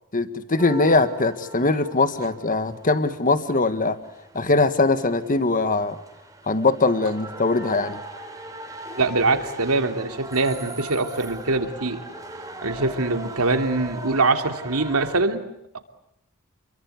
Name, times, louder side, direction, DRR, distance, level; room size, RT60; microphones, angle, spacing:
voice 1, 0.1-4.0 4.3-6.0 6.5-8.0, left 3 dB, 40° left, 11 dB, 1.6 m, -21 dB
sound 1, 0.6-15.2, right 2 dB, 15° right, 3.4 m, -39 dB
voice 2, 9.0-12.0 12.6-15.4, right 3 dB, 75° right, 6 dB, 3.0 m, -23 dB
29.5 x 23.5 x 8.3 m, 0.80 s
head